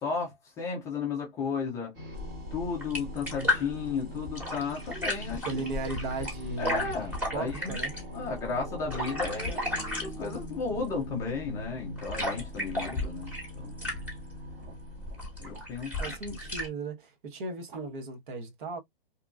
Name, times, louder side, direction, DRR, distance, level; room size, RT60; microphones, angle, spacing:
voice 1, 0.0-2.0 2.5-5.6 6.6-7.8 8.1-9.6 10.0-13.9 15.4-16.1, left 5 dB, 10° left, 0.4 m, -34 dB
sound 1, 1.9-16.0, equal, 30° right, 1.1 m, -43 dB
sound 2, 2.1-16.7, left 1 dB, 5° right, 1.2 m, -35 dB
voice 2, 5.5-7.0 7.3-7.9 16.0-18.8, right 3 dB, 55° right, 1.1 m, -36 dB
2.9 x 2.2 x 2.3 m
hypercardioid pair, 140°, 30 cm